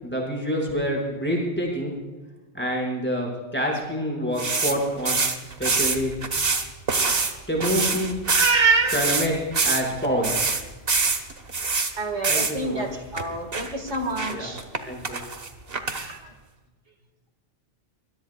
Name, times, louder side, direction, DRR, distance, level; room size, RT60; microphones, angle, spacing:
voice 1, 0.0-1.9 2.5-6.1 7.5-8.2 8.9-9.3 9.6-10.3 12.3-13.0 14.3-14.5 14.8-15.2, equal, 10° left, -2 dB, 5.7 m, -27 dB
sound 1, 4.4-7.3 7.6-11.9 12.2-12.6 13.2-13.3 13.5-14.8 15.0-16.1, right 4 dB, 55° right, 1.6 m, -25 dB
voice 2, 8.4-9.0 12.0-14.6 15.9-16.2, right 4 dB, 85° right, 5 dB, 2.3 m, -25 dB
25.0 x 21.5 x 2.4 m, 1.3 s
omnidirectional pair, 1.2 m